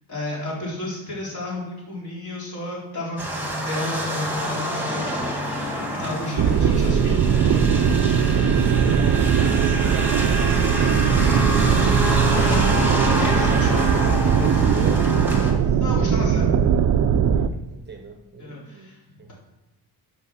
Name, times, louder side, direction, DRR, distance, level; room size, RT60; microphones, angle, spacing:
voice 1, 0.1-5.1 5.9-7.6 12.4-13.9 15.8-16.5 18.4-19.0, left 1 dB, 45° left, -5 dB, 3.9 m, -32 dB
sound 1, 3.2-15.5, equal, 5° right, 1.7 m, -27 dB
sound 2, 6.4-17.5, right 7 dB, 45° right, 0.5 m, -19 dB
voice 2, 8.7-11.6 13.3-15.8 17.3-19.3, right 4 dB, 25° right, 4 dB, 0.9 m, -38 dB
11.0 x 6.7 x 6.3 m, 0.98 s
cardioid pair, 175°, 41 cm